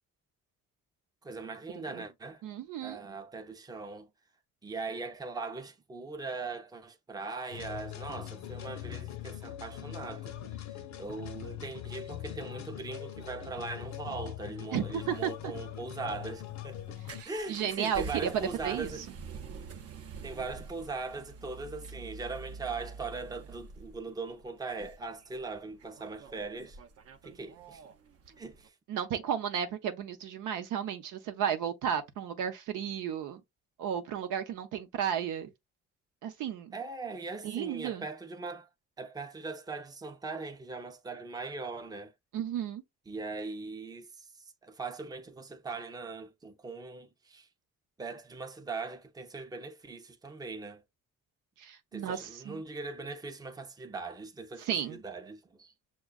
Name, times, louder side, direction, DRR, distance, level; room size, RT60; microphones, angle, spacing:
voice 1, 1.2-2.4 2.8-4.1 4.6-17.0 17.3-19.0 20.2-26.8 27.2-27.8 28.4-28.7 36.7-38.7 39.0-42.1 43.1-47.5 48.0-50.8 51.9-55.7, right 3 dB, 15° right, 0.5 m, -40 dB
voice 2, 2.4-3.1 14.7-15.5 17.1-18.3 18.6-18.9 28.9-33.4 33.8-35.5 36.2-36.8 37.4-38.0 42.3-42.8 51.6-52.6 54.6-55.0, right 8 dB, 85° right, 0.7 m, -33 dB
sound 1, 7.5-17.2, left 11 dB, 65° left, 0.7 m, -42 dB
sound 2, 14.8-28.7, right 5 dB, 50° right, 0.6 m, -47 dB
6.2 x 2.3 x 2.2 m
cardioid pair, 90°, 30 cm